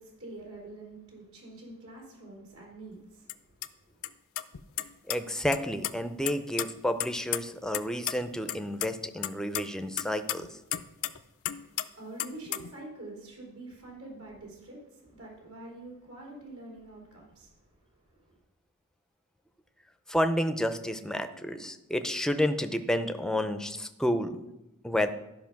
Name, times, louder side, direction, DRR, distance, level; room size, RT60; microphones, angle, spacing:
voice 1, 0.0-4.1 11.5-17.6 17.9-18.4, right 2 dB, 85° right, -3 dB, 3.8 m, -46 dB
sound 1, 3.3-3.4 3.6-3.7 4.0-4.1 4.4-5.2 5.5-5.9 6.3-7.8 8.1-8.2 8.5-8.9 9.2-11.2 11.4-11.9 12.2-12.7, left 13 dB, 65° left, 0.5 m, -32 dB
voice 2, 5.1-10.5 20.1-24.4 24.8-25.1, equal, 5° left, 8 dB, 0.5 m, -30 dB
12.5 x 5.4 x 5.9 m, 0.95 s
head